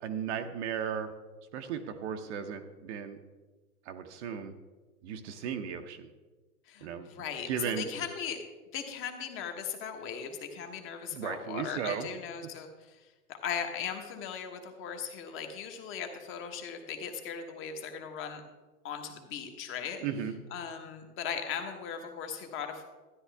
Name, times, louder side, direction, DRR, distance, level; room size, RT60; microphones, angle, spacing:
voice 1, 0.0-1.1 1.5-3.2 3.9-4.5 5.0-6.1 6.8-7.1 7.5-7.9 11.1-12.1 20.0-20.3, right 8 dB, 50° right, 7 dB, 0.8 m, -35 dB
voice 2, 6.7-8.4 8.7-13.0 13.4-18.4 18.8-20.0 20.5-22.9, left 7 dB, 25° left, 5 dB, 1.3 m, -38 dB
13.0 x 10.0 x 3.5 m, 1.2 s
hypercardioid pair, 135°, 45 cm